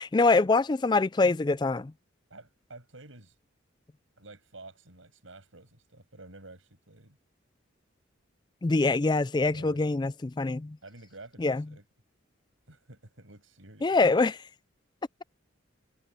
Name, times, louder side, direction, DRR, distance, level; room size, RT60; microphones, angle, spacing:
voice 1, 0.0-1.9 8.6-10.8 11.4-11.6 13.8-14.4, left 3 dB, 20° left, 0.3 m, -24 dB
voice 2, 2.3-3.4 4.2-7.2 9.3-9.9 10.8-11.8 12.7-14.0, right 2 dB, 85° right, 6.6 m, -50 dB
head